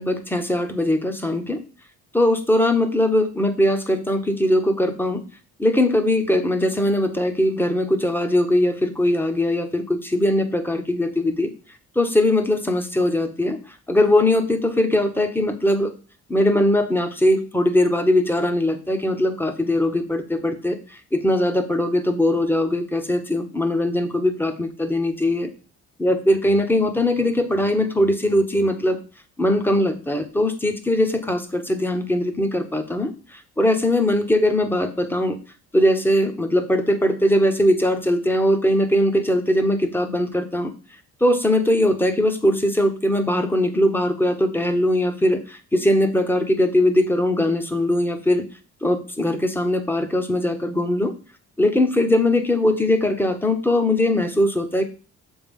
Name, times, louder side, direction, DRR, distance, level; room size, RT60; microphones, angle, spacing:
voice 1, 0.0-1.6 2.1-5.2 5.6-11.5 11.9-13.6 13.9-15.9 16.3-25.5 26.0-29.0 29.4-35.4 35.7-40.7 41.2-48.4 48.8-51.1 51.6-54.8, left 1 dB, 5° left, 7 dB, 1.0 m, -20 dB
7.0 x 3.5 x 5.4 m, 0.36 s
cardioid pair, 90°, 30 cm